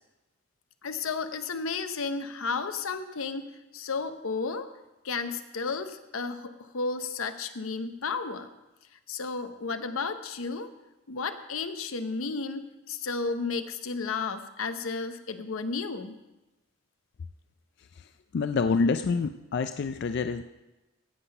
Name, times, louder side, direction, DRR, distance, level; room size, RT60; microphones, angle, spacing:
voice 1, 0.8-4.7 5.0-8.5 9.1-10.7 11.1-16.2, left 4 dB, 85° left, 10 dB, 0.8 m, -33 dB
voice 2, 18.3-20.4, left 4 dB, 55° left, 10 dB, 0.4 m, -27 dB
16.0 x 5.8 x 5.5 m, 1.0 s
head